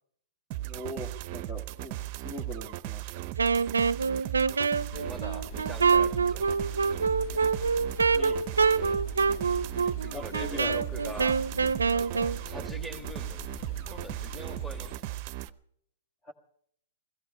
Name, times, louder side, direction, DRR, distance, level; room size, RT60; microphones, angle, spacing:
sound 1, 0.5-15.5, right 15 dB, 45° right, 0.7 m, -37 dB
voice 1, 0.6-3.3 8.1-8.4 10.1-10.8 12.5-12.7 16.2-16.3, left 1 dB, 20° left, 1 dB, 1.6 m, -41 dB
Wind instrument woodwind instrument, 3.4-12.4, right 5 dB, 90° right, 0.6 m, -26 dB
sound 2, 4.9-14.9, left 1 dB, 45° left, 3.2 m, -44 dB
voice 2, 4.9-6.4 9.8-11.4 11.9-15.0, right 1 dB, 5° left, 6 dB, 2.2 m, -44 dB
16.5 x 15.0 x 5.4 m, 0.67 s
hypercardioid pair, 120°, 0 cm